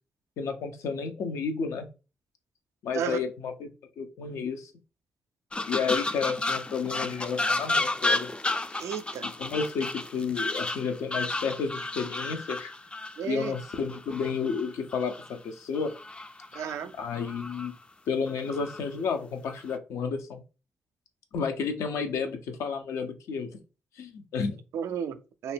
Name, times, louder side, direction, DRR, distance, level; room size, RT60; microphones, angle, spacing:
voice 1, 0.4-1.9 2.8-3.7 4.0-4.7 5.7-8.3 9.2-12.7 13.2-15.9 17.0-17.7 18.1-20.4 21.3-23.5 24.0-24.6, left 5 dB, 75° left, 0.5 m, -31 dB
sound 1, 5.5-15.3 15.7-16.8 17.1-17.7 18.3-18.8 19.4-19.8, left 2 dB, 20° left, 0.4 m, -32 dB
voice 2, 8.8-9.3 13.2-13.5 16.5-16.9 24.7-25.5, right 8 dB, 70° right, 0.3 m, -33 dB
2.5 x 2.1 x 3.3 m
hypercardioid pair, 45°, 5 cm